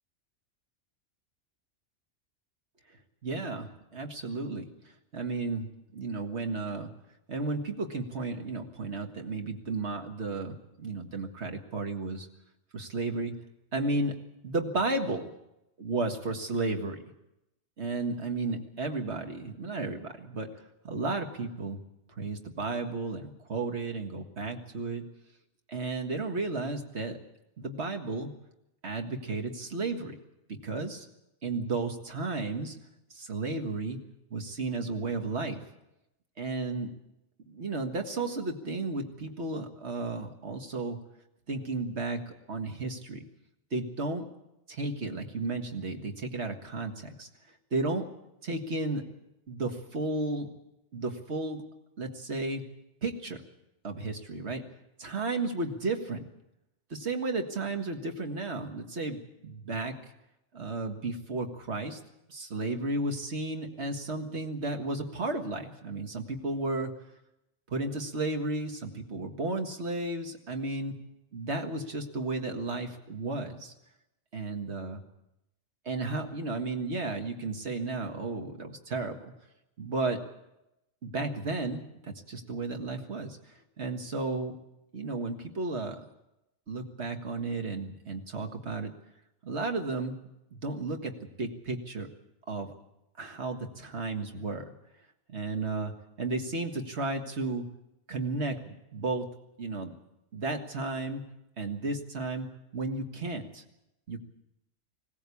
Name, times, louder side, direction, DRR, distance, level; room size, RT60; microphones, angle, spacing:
voice 1, 3.2-4.7 5.1-6.9 7.3-12.3 12.7-13.3 13.7-14.2 14.4-15.2 15.8-17.1 17.8-20.5 20.8-21.8 22.1-25.0 25.7-27.2 27.6-28.3 28.8-30.2 30.6-31.1 31.4-32.8 33.1-34.0 34.3-35.6 36.4-36.9 37.5-41.0 41.5-42.2 42.5-43.2 43.7-44.3 44.7-47.3 47.7-48.1 48.4-49.0 49.5-50.5 50.9-51.6 52.0-52.6 53.0-53.4 53.8-54.6 55.0-56.2 56.9-59.9 60.5-62.0 62.3-66.9 67.7-71.0 71.3-73.7 74.3-75.0 75.9-79.3 79.8-80.2 81.0-83.4 83.8-84.6 84.9-86.0 86.7-89.0 89.4-90.2 90.6-92.1 92.5-92.7 93.2-94.7 95.3-95.9 96.2-97.6 98.1-99.3 99.6-99.9 100.3-101.2 101.6-102.5 102.7-103.6 104.1-104.2, right 3 dB, 60° right, 5 dB, 2.0 m, -33 dB
20.5 x 17.0 x 8.4 m, 0.89 s
omnidirectional pair, 1.3 m